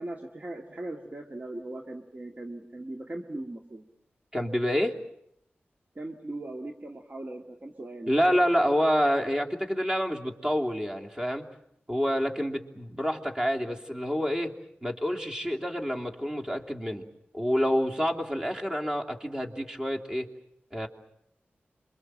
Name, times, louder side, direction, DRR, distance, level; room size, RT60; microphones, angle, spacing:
voice 1, 0.0-3.8 6.0-8.1, right 1 dB, 40° right, 3 dB, 1.9 m, -39 dB
voice 2, 4.3-4.9 8.1-11.5 11.9-14.5 14.8-17.0 17.3-20.3 20.7-20.9, equal, 20° right, 1 dB, 3.1 m, -27 dB
27.5 x 24.0 x 7.7 m, 0.77 s
cardioid pair, 55°, 4 cm